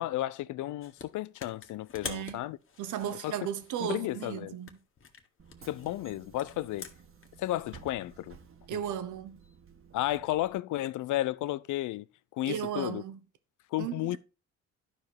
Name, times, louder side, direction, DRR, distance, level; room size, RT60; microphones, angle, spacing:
voice 1, 0.0-2.6 3.2-3.5 3.8-4.5 5.6-6.9 7.4-8.4 8.7-8.8 9.9-12.1 12.3-13.0 13.7-14.2, left 15 dB, 80° left, 0.6 m, -33 dB
sound 1, 0.8-1.1 1.4-4.2 4.6-7.3, left 5 dB, 45° left, 1.7 m, -46 dB
voice 2, 2.0-2.4 2.8-4.8 8.7-9.4 12.4-13.2 13.8-14.2, right 10 dB, 80° right, 1.1 m, -35 dB
Bus / Engine, 5.4-10.5, right 6 dB, 45° right, 1.5 m, -54 dB
11.5 x 5.0 x 4.6 m
cardioid pair, 90°, 30 cm